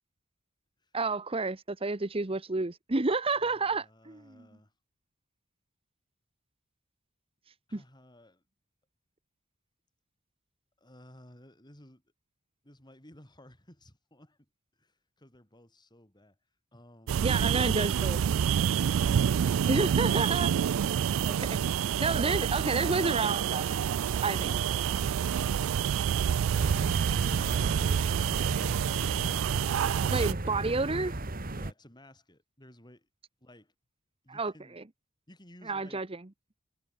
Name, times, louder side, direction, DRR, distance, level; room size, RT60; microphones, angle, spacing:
voice 1, 0.9-4.4 7.7-7.8 17.2-18.2 19.7-20.8 21.2-23.8 24.2-24.5 30.1-31.1 34.3-34.5 35.7-36.1, right 3 dB, 30° right, 1.0 m, -30 dB
voice 2, 3.3-4.7 7.7-8.4 10.8-12.0 12.6-16.4 16.7-17.3 19.3-21.1 22.5-22.6 24.3-29.4 31.5-33.1 33.4-33.7 34.2-34.8 35.3-36.0, left 1 dB, 20° left, 6.1 m, -56 dB
sound 1, 17.1-30.3, right 8 dB, 85° right, 0.3 m, -28 dB
sound 2, 26.5-31.7, right 2 dB, 45° right, 1.7 m, -35 dB
head